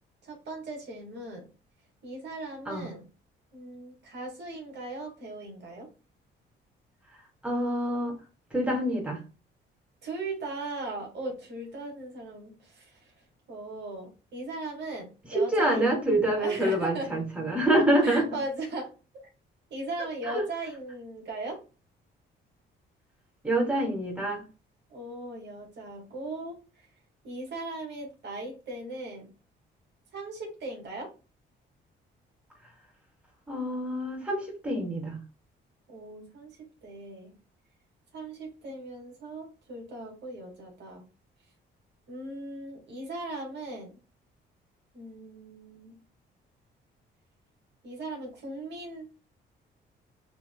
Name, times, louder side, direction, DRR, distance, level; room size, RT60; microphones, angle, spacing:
voice 1, 0.2-1.5 2.0-3.0 3.5-5.9 10.0-13.1 13.5-15.9 16.4-17.1 18.0-18.9 19.7-21.6 24.9-26.6 27.2-29.3 30.1-31.1 35.9-37.3 38.1-41.0 42.1-44.0 44.9-46.0 47.8-49.1, right 2 dB, 60° right, 0 dB, 2.1 m, -38 dB
voice 2, 7.4-8.2 8.5-9.2 15.3-18.3 20.3-20.4 23.4-24.4 33.5-35.2, right 1 dB, 5° right, -2 dB, 2.5 m, -26 dB
6.1 x 3.4 x 2.2 m, 0.33 s
cardioid pair, 90°, 20 cm